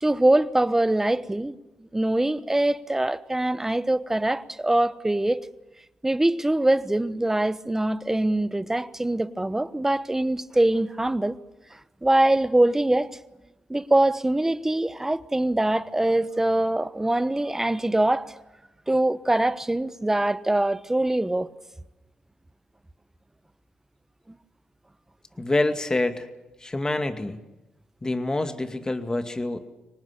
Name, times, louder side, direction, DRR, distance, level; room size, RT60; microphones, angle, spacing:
voice 1, 0.0-1.6 1.9-5.4 6.0-11.4 11.7-13.2 13.7-18.3 18.9-21.5, right 1 dB, 15° right, 1.1 m, -23 dB
voice 2, 25.4-26.3 26.6-27.4 28.0-29.6, left 2 dB, 25° left, 2.3 m, -26 dB
24.5 x 19.0 x 8.4 m
supercardioid pair, 55°, 3 cm